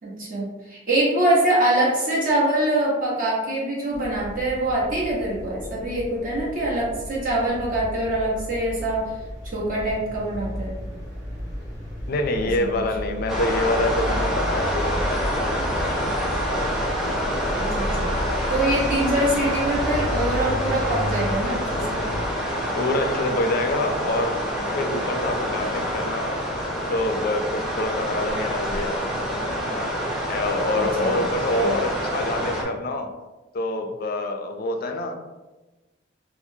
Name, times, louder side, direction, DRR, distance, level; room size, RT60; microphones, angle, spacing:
voice 1, 0.0-9.1 9.5-10.8 12.6-12.7 17.5-18.1 18.5-22.0 30.7-31.2 31.5-31.8, right 1 dB, 45° right, -5 dB, 1.0 m, -24 dB
sound 1, 3.9-22.3, equal, 20° right, 1.4 m, -33 dB
voice 2, 12.1-15.4 15.8-16.2 22.7-24.4 24.7-26.4 26.9-29.1 29.6-30.0 30.3-33.1 33.5-35.2, left 2 dB, 50° left, 5 dB, 0.3 m, -26 dB
sound 2, 13.3-32.6, equal, ahead, 0.6 m, -27 dB
4.2 x 2.0 x 2.7 m, 1.2 s
head